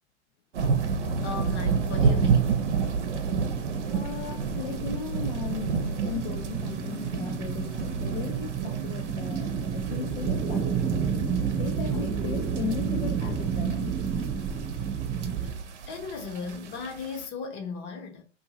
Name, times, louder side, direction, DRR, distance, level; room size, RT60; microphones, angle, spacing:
sound 1, 0.5-17.2, right 5 dB, 70° right, 0.8 m, -30 dB
sound 2, 0.8-15.5, right 7 dB, 5° right, 0.3 m, -32 dB
voice 1, 1.2-2.6 15.9-18.2, left 5 dB, 30° left, 0.9 m, -36 dB
voice 2, 3.9-11.2 11.5-14.0 16.3-16.5, left 8 dB, 50° left, 0.6 m, -37 dB
2.8 x 2.6 x 3.9 m
hypercardioid pair, 115°, 36 cm